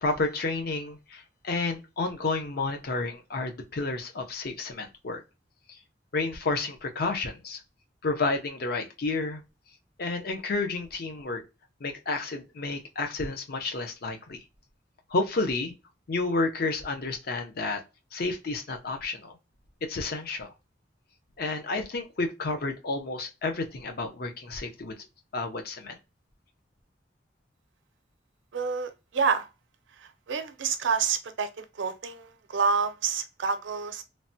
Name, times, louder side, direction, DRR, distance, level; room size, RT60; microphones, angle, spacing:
voice 1, 0.0-5.2 6.1-7.6 8.0-9.4 10.0-11.4 11.8-14.4 15.1-15.7 16.1-17.8 18.1-19.3 19.9-20.5 21.4-24.9 25.3-26.0, left 3 dB, 55° left, 0.6 m, -30 dB
voice 2, 28.5-29.5 30.0-34.0, right 5 dB, 85° right, 0.5 m, -28 dB
3.2 x 2.1 x 2.6 m
head